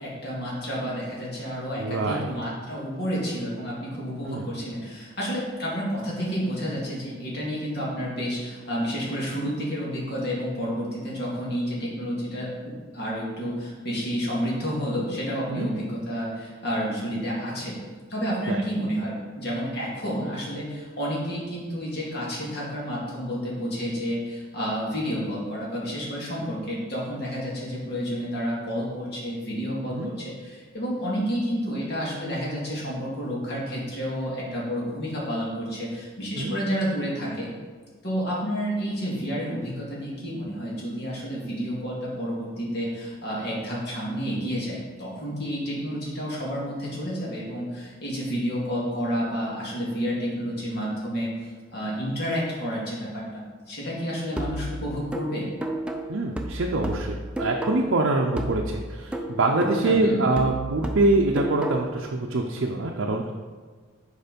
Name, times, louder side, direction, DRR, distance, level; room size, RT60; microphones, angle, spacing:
voice 1, 0.0-17.8 18.1-37.5 38.0-55.4 59.8-60.2, equal, 50° left, -5 dB, 2.3 m, -30 dB
voice 2, 1.8-2.3 4.3-4.5 15.5-15.7 18.5-18.6 29.9-30.1 36.4-36.6 56.1-63.3, right 2 dB, 65° right, 0 dB, 0.6 m, -25 dB
sound 1, 54.4-58.0 58.4-62.0, right 1 dB, 5° right, 0.4 m, -32 dB
6.7 x 4.8 x 5.2 m, 1.5 s
head